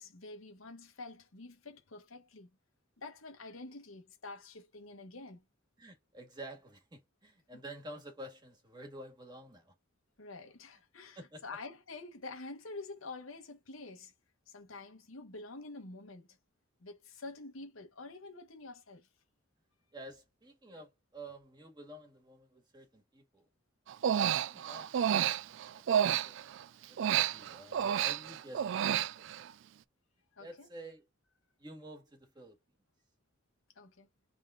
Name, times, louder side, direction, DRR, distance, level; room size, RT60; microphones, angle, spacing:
voice 1, 0.0-2.5 3.0-5.4 10.2-14.1 14.5-16.4 16.8-19.1 30.3-30.7 33.7-34.1, left 3 dB, 85° left, 1.2 m, -47 dB
voice 2, 5.8-9.7 11.1-11.4 19.9-23.5 23.9-26.5 26.9-29.5 30.4-31.0 31.6-32.6, right 1 dB, 20° right, 1.7 m, -50 dB
Human voice, 23.9-26.6 27.0-29.5, right 9 dB, 65° right, 0.3 m, -30 dB
3.7 x 3.7 x 3.6 m
head